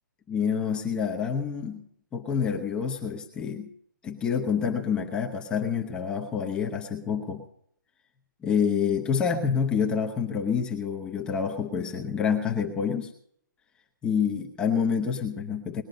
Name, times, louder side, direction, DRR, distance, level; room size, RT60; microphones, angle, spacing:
voice 1, 0.3-1.8 2.1-3.7 4.0-7.4 8.4-13.1 14.0-15.8, left 6 dB, 10° left, 1 dB, 0.9 m, -27 dB
20.5 x 10.5 x 5.3 m, 0.67 s
hypercardioid pair, 170°, 11 cm